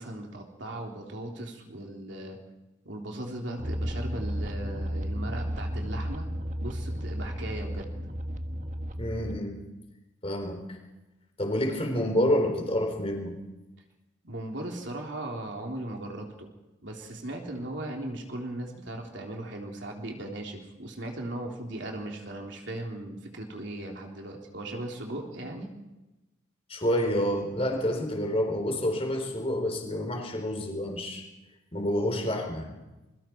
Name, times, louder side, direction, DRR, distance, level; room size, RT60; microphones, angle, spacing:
voice 1, 0.0-2.4 2.9-6.3 6.6-8.1 14.2-16.5 16.8-25.7, right 1 dB, 60° right, 1 dB, 3.7 m, -38 dB
sound 1, 3.6-9.4, equal, 40° right, 1.5 m, -33 dB
voice 2, 9.0-9.6 10.2-10.6 11.4-13.4 26.7-31.2 31.7-32.7, equal, 30° left, 3 dB, 4.1 m, -28 dB
27.5 x 23.0 x 4.7 m, 1.0 s
head